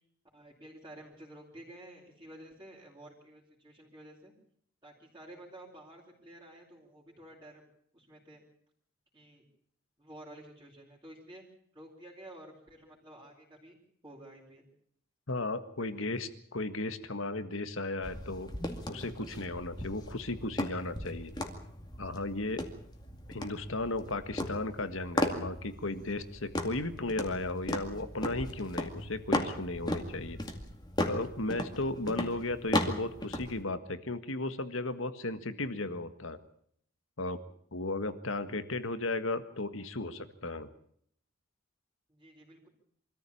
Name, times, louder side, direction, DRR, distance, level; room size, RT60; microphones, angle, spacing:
voice 1, 0.3-4.3 4.8-7.6 7.9-8.4 9.1-9.4 10.0-11.4 11.7-13.8 14.0-14.7 15.8-16.2 42.1-42.7, right 1 dB, 15° right, -6 dB, 4.3 m, -51 dB
voice 2, 15.3-18.5 18.9-21.3 22.0-22.6 23.3-30.4 31.1-36.4 37.2-37.4 37.7-40.7, left 2 dB, 70° left, 11 dB, 1.7 m, -35 dB
sound 1, 18.0-33.6, left 1 dB, 20° left, 2.2 m, -36 dB
25.0 x 14.5 x 8.6 m, 0.66 s
head